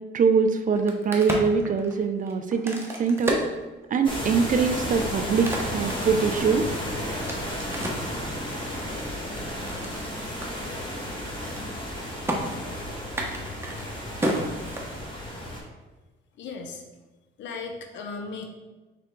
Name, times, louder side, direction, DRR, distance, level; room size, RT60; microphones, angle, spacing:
voice 1, 0.1-3.4 3.9-6.7, right 5 dB, 40° right, 7 dB, 0.4 m, -23 dB
Crack, 0.6-4.3 4.8-8.1 8.7-10.0 10.4-10.5 10.8-11.1 11.4-11.9 12.3-12.4 13.0-15.3, right 1 dB, 10° right, 0.9 m, -32 dB
sound 1, 4.0-15.6, left 1 dB, 25° left, 1.3 m, -33 dB
voice 2, 16.4-16.8 17.4-18.5, left 4 dB, 65° left, 4 dB, 0.6 m, -36 dB
3.4 x 3.4 x 4.5 m, 1.2 s
cardioid pair, 90°, 20 cm